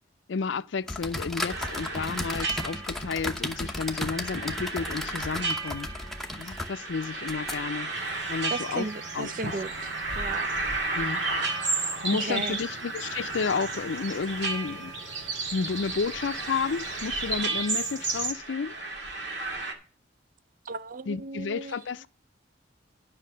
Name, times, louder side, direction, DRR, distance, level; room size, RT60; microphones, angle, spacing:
voice 1, 0.3-5.9 6.4-7.9 8.3-9.5 10.9-11.2 12.0-14.9 15.5-18.8 21.1-22.1, left 5 dB, 80° left, 0.5 m, -31 dB
sound 1, 0.8-8.0, left 1 dB, ahead, 0.9 m, -35 dB
sound 2, 1.5-19.7, right 3 dB, 65° right, 2.1 m, -35 dB
sound 3, 7.9-18.3, right 4 dB, 90° right, 2.0 m, -35 dB
voice 2, 8.5-9.9 10.2-10.5 12.2-12.6 20.7-21.8, right 3 dB, 45° right, 0.4 m, -35 dB
10.5 x 5.8 x 6.4 m
head